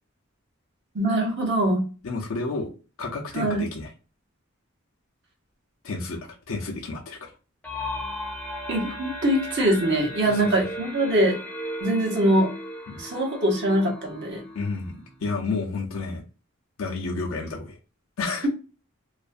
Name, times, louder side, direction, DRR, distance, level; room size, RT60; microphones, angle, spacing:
voice 1, 0.9-1.8 3.3-3.6 8.7-11.4 11.8-12.5 13.0-14.4, right 1 dB, 55° right, 0.8 m, -23 dB
voice 2, 2.0-2.7 3.0-3.9 5.8-7.3 10.3-10.5 12.9-13.0 14.5-14.9 15.2-16.2 16.8-17.8 18.2-18.5, left 3 dB, 70° left, 0.6 m, -30 dB
sound 1, 7.6-15.3, equal, 5° left, 0.6 m, -36 dB
2.4 x 2.2 x 2.4 m
head